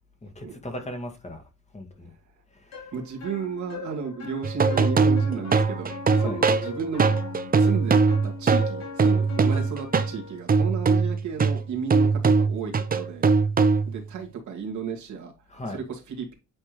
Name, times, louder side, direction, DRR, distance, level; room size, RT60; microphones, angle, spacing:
voice 1, 0.2-1.4 1.7-2.1 2.5-2.9 6.2-6.4 15.5-15.8, left 1 dB, 20° left, 1.8 m, -38 dB
sound 1, 2.7-10.4, left 5 dB, 60° left, 2.8 m, -39 dB
voice 2, 2.9-7.0 7.5-13.3 13.9-15.3 15.7-16.3, right 6 dB, 70° right, 2.2 m, -33 dB
sound 2, 4.4-10.2 10.5-14.1, right 4 dB, 30° right, 0.7 m, -21 dB
8.6 x 3.5 x 3.2 m
cardioid pair, 90°, 30 cm